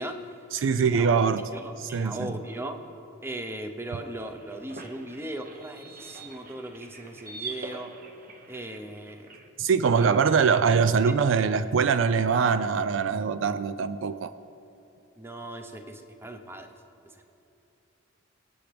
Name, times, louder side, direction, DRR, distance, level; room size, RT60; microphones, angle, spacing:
voice 1, 0.0-0.4 0.8-2.8 3.2-7.9 8.5-9.3 9.9-10.1 11.1-11.2 15.2-16.7 17.1-17.3, right 1 dB, 10° right, 6 dB, 0.8 m, -38 dB
voice 2, 0.5-1.5 1.8-2.3 9.6-14.3, right 6 dB, 70° right, 12 dB, 0.4 m, -23 dB
sound 1, 4.0-9.5, right 3 dB, 45° right, 1.0 m, -44 dB
25.0 x 8.4 x 3.4 m, 2.8 s
head